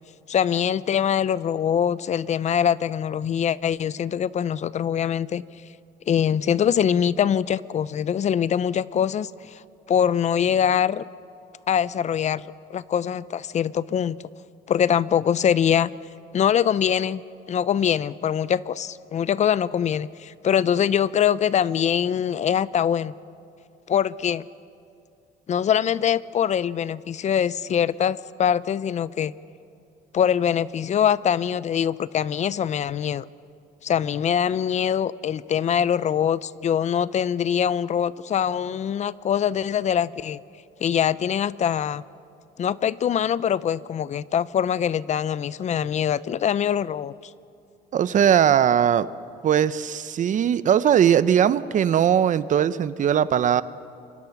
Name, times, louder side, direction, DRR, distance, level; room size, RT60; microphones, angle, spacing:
voice 1, 0.3-5.4 6.1-9.6 9.9-11.0 11.7-12.4 12.7-14.2 14.7-15.9 16.3-17.2 17.5-23.1 23.9-24.4 25.5-29.3 30.1-33.3 33.8-40.4 40.8-42.0 42.6-47.3, left 9 dB, 45° left, 18 dB, 0.6 m, -23 dB
voice 2, 47.9-49.1 49.4-53.6, right 9 dB, 50° right, 15 dB, 0.8 m, -19 dB
28.5 x 24.0 x 6.0 m, 2.5 s
cardioid pair, 110°, 17 cm